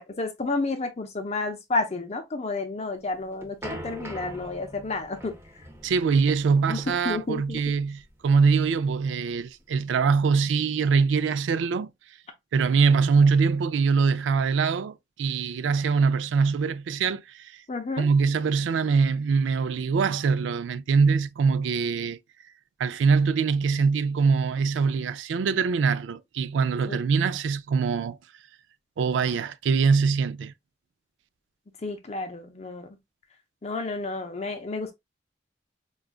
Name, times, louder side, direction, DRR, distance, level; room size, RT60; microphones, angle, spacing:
voice 1, 0.0-5.3 6.7-7.6 17.7-18.1 26.9-27.0 31.8-32.9 33.6-34.9, left 3 dB, 35° left, 0.5 m, -31 dB
sound 1, 3.0-9.8, right 1 dB, 15° right, 0.7 m, -43 dB
voice 2, 5.8-11.9 12.5-17.6 18.0-22.2 22.8-28.2 29.0-30.5, right 5 dB, 90° right, 0.3 m, -23 dB
4.8 x 2.3 x 2.3 m
head